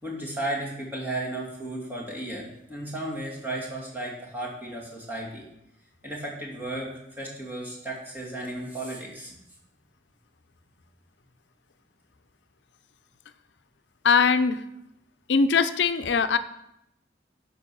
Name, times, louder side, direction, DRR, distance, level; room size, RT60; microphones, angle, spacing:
voice 1, 0.0-5.4 6.0-9.4, right 1 dB, 10° right, -4 dB, 2.7 m, -34 dB
voice 2, 14.0-14.6 15.3-16.4, left 5 dB, 90° left, 11 dB, 0.5 m, -21 dB
12.0 x 5.3 x 6.2 m, 0.84 s
head